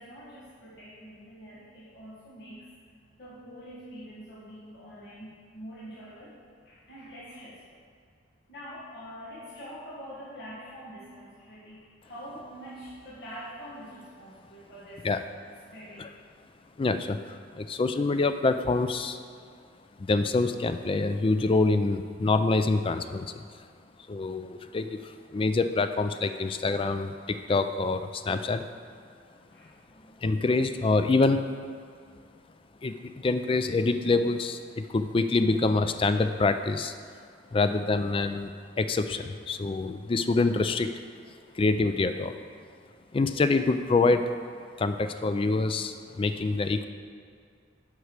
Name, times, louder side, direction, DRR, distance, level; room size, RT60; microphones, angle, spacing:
voice 1, 0.0-2.7 3.2-6.4 6.6-7.8 8.5-15.0 15.7-16.1 29.5-30.2, equal, 60° left, -10 dB, 1.7 m, -45 dB
voice 2, 16.8-19.2 20.0-23.4 24.1-28.6 30.2-31.4 32.8-36.9 37.5-40.9 41.5-42.4 43.1-44.3 44.8-46.9, left 3 dB, 30° left, 9 dB, 0.3 m, -26 dB
8.1 x 4.7 x 6.5 m, 2.3 s
head